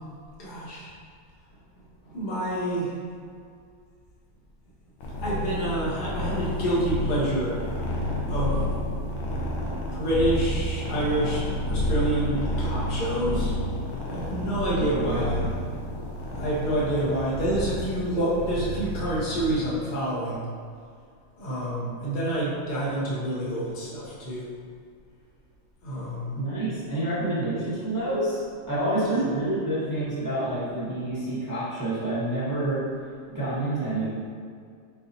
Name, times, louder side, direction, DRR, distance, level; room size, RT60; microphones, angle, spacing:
voice 1, 0.4-0.9 1.8-3.0 5.2-7.6 8.3-8.6 9.9-13.5 14.1-15.4 16.3-20.5 21.4-24.5 25.8-26.4 28.9-29.2, right 1 dB, 60° left, -7 dB, 0.5 m, -28 dB
sound 1, 5.0-19.6, left 1 dB, 80° left, 1.6 m, -30 dB
voice 2, 14.7-15.5 26.4-28.4 28.7-32.8 33.3-34.1, right 1 dB, 30° right, -11 dB, 0.3 m, -28 dB
4.7 x 4.0 x 2.7 m, 2.2 s
omnidirectional pair, 2.3 m